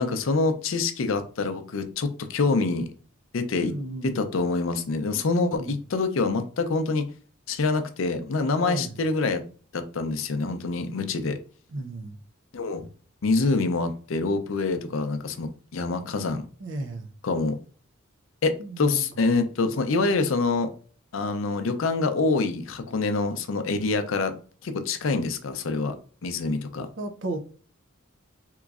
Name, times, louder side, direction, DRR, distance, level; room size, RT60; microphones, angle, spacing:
voice 1, 0.0-2.9 3.3-3.8 4.0-7.0 7.5-9.4 9.7-11.4 12.5-12.9 13.2-16.5 17.2-17.6 18.4-20.7 21.1-24.3 24.6-26.0 26.2-26.9, left 3 dB, 75° left, 0.5 m, -26 dB
voice 2, 3.6-4.2 5.4-5.7 8.6-8.9 11.7-12.2 16.6-17.1 18.6-19.0 27.0-27.4, right 2 dB, 60° right, 0.5 m, -34 dB
3.7 x 3.0 x 2.4 m
head